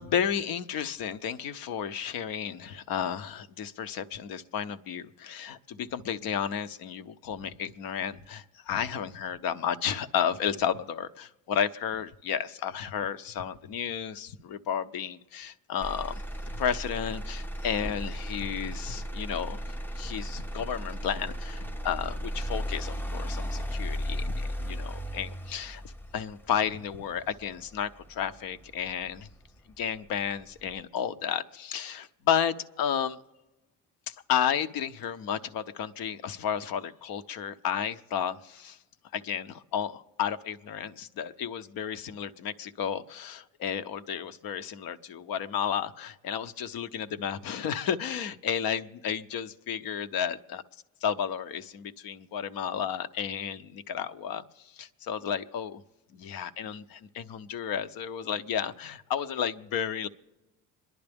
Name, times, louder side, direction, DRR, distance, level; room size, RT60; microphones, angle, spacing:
voice 1, 0.0-16.2 16.6-19.6 20.0-25.8 26.1-29.3 29.8-33.2 34.1-38.8 39.1-50.6 51.0-54.4 54.7-55.8 56.1-60.1, left 8 dB, 70° left, 11 dB, 0.8 m, -32 dB
Motor vehicle (road), 15.8-29.8 30.3-30.8, equal, 5° left, 0.5 m, -36 dB
27.0 x 11.0 x 3.5 m, 1.1 s
cardioid pair, 100°, 37 cm